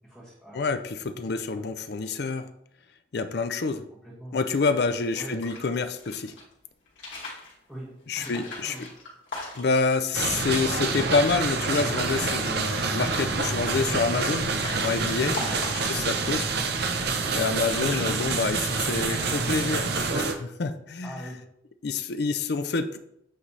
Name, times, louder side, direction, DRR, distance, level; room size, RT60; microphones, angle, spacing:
voice 1, 0.0-0.7 1.3-2.3 4.0-4.4 5.2-5.4 7.7-8.8 11.8-11.9 15.2-16.0 17.2-17.4 21.0-21.4, right 1 dB, ahead, -10 dB, 1.9 m, -43 dB
voice 2, 0.5-2.5 3.1-3.8 4.3-6.3 8.1-8.9 9.5-14.5 14.8-15.4 15.7-16.5 17.3-21.3 21.8-23.0, left 4 dB, 60° left, 10 dB, 0.5 m, -27 dB
sound 1, 5.1-6.4 6.9-7.5 8.1-9.9 10.3-10.4 10.6-11.1 11.5-12.1 12.5-13.0 13.7-16.4 17.1-17.5 17.7-18.8 19.1-19.5, left 3 dB, 85° left, 2.5 m, -40 dB
sound 2, 10.1-20.3, right 4 dB, 60° right, 0.7 m, -27 dB
8.5 x 4.0 x 3.2 m, 0.76 s
head